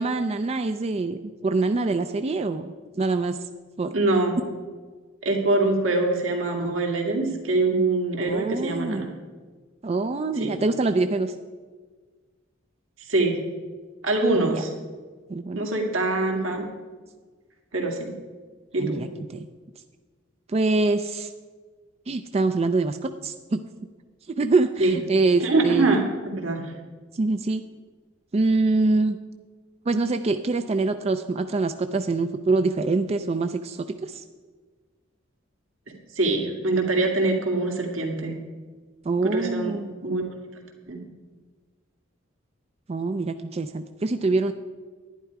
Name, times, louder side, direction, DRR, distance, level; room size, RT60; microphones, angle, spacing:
voice 1, 0.0-3.4 3.8-3.9 8.3-9.0 9.8-11.3 14.3-14.6 15.3-15.6 18.8-19.5 20.5-21.3 22.1-23.0 23.2-23.6 24.4-26.0 27.1-27.6 28.3-29.2 29.9-34.2 39.0-39.9 42.9-44.5, right 3 dB, 30° right, 8 dB, 0.4 m, -24 dB
voice 2, 3.9-4.4 5.2-9.1 10.4-10.5 13.0-13.4 14.0-14.7 15.5-16.6 17.7-18.1 18.7-19.0 24.8-24.9 25.4-26.0 26.4-26.7 36.2-38.4 39.2-39.7 40.0-40.3 40.9-41.0, right 2 dB, 80° right, 0 dB, 2.2 m, -24 dB
11.0 x 10.5 x 4.7 m, 1.5 s
head